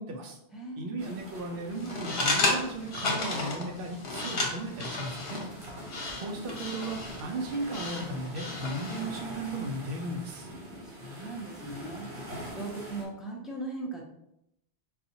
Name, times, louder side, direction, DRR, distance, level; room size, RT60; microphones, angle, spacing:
voice 1, 0.0-0.4 0.8-5.4 6.1-10.5, right 2 dB, 65° right, 3 dB, 0.8 m, -36 dB
voice 2, 0.5-0.9 10.8-14.0, right 2 dB, ahead, -2 dB, 0.3 m, -39 dB
sound 1, 1.0-13.0, equal, 85° right, 1.1 m, -44 dB
sound 2, 1.8-9.1, left 2 dB, 75° left, 1.0 m, -33 dB
4.1 x 2.3 x 2.7 m, 0.80 s
omnidirectional pair, 1.1 m